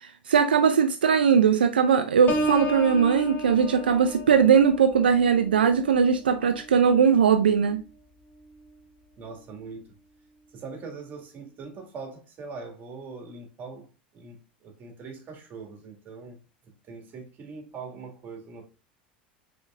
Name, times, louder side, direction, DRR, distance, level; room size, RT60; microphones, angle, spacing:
voice 1, 0.0-7.8, right 7 dB, 85° right, 0.3 m, -20 dB
Piano, 2.3-7.9 8.4-8.7, equal, 35° left, 1.2 m, -34 dB
voice 2, 9.2-9.8 10.5-13.9 14.1-16.4 16.9-18.7, right 4 dB, 35° right, 1.8 m, -41 dB
5.0 x 3.8 x 2.4 m
hypercardioid pair, 85°, 5 cm